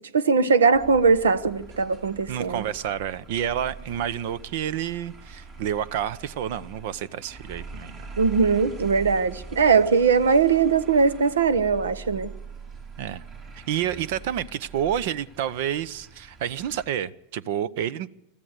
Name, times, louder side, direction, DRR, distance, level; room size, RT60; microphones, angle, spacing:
voice 1, 0.1-2.6 8.2-12.3, right 5 dB, 75° right, 1.1 m, -20 dB
sound 1, 0.7-16.9, right 4 dB, 40° right, 4.7 m, -43 dB
voice 2, 2.3-8.1 13.0-13.2 13.5-18.1, right 10 dB, 60° right, 0.8 m, -29 dB
24.5 x 14.0 x 8.2 m
hypercardioid pair, 90°, 0 cm